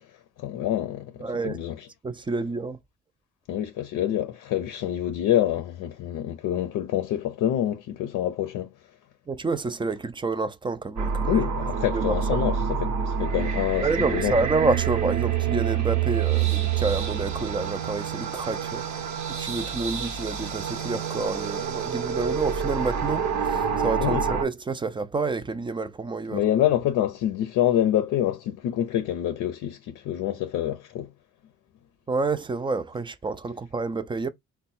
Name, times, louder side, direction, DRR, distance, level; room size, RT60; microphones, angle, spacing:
voice 1, 0.4-1.9 3.5-8.7 11.3-14.4 24.0-24.3 26.3-31.1, left 11 dB, 85° left, 0.6 m, -26 dB
voice 2, 1.2-1.6 2.0-2.8 9.3-11.5 11.9-12.0 12.3-12.4 13.8-19.0 19.4-26.4 32.1-34.3, right 3 dB, 15° right, 0.4 m, -28 dB
sound 1, 11.0-24.4, right 7 dB, 65° right, 1.0 m, -27 dB
3.7 x 2.2 x 4.2 m
cardioid pair, 90°, 30 cm